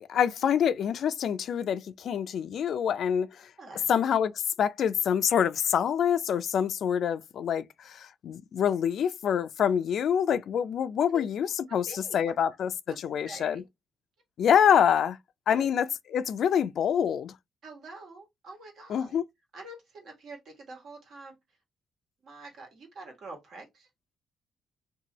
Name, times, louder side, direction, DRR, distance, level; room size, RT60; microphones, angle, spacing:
voice 1, 0.0-3.3 3.9-4.3 4.6-12.7 13.0-13.6 14.4-15.2 15.5-17.3 18.9-19.2, left 8 dB, 65° left, 0.3 m, -26 dB
voice 2, 3.6-3.9 11.1-11.2 11.7-12.3 12.9-13.0 13.2-13.6 15.5-15.7 17.6-19.2 19.5-21.4 22.2-23.9, right 1 dB, 65° right, 1.3 m, -45 dB
2.7 x 2.3 x 2.9 m
cardioid pair, 90°, 0 cm